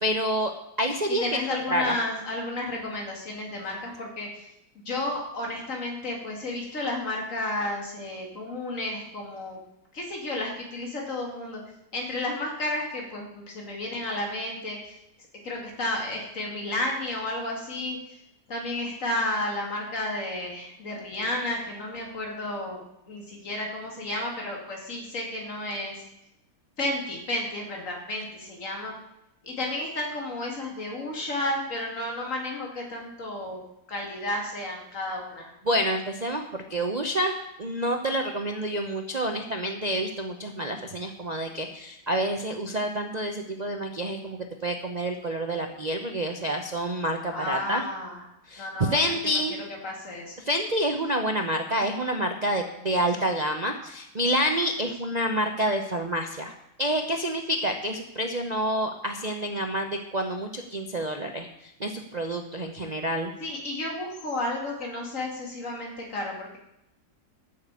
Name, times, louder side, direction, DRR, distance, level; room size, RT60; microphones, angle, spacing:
voice 1, 0.0-0.5 0.8-1.2 1.7-2.0 35.6-47.8 48.5-49.6 50.4-56.5 56.8-63.3, equal, 35° right, 3 dB, 0.7 m, -28 dB
voice 2, 1.2-4.4 4.9-9.6 9.9-11.6 11.9-15.0 15.4-18.0 18.5-22.8 23.1-26.0 26.8-28.9 29.4-33.6 33.9-35.5 47.3-48.2 48.6-49.4 49.8-50.4 63.4-66.6, left 1 dB, 50° left, -1 dB, 3.0 m, -32 dB
11.5 x 6.8 x 8.3 m, 0.82 s
omnidirectional pair, 1.8 m